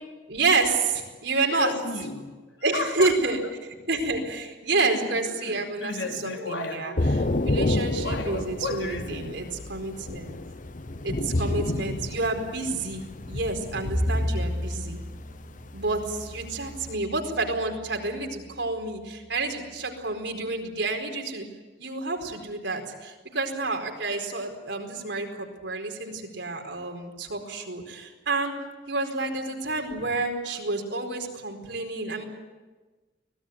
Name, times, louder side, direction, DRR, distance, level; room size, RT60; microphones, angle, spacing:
voice 1, 0.3-1.7 2.6-3.4 3.9-5.9 6.2-6.9 7.4-10.4 11.0-15.0 15.7-21.5 21.8-28.5 28.9-32.2, right 3 dB, 70° right, 4.6 m, -29 dB
voice 2, 1.5-2.4 2.7-3.3 4.7-7.5 8.0-9.4, left 2 dB, 80° left, 3.6 m, -34 dB
Thunder / Rain, 7.0-16.9, left 2 dB, 45° left, 0.9 m, -30 dB
Bowed string instrument, 13.9-18.3, equal, 5° right, 5.2 m, -33 dB
24.5 x 18.5 x 9.5 m
head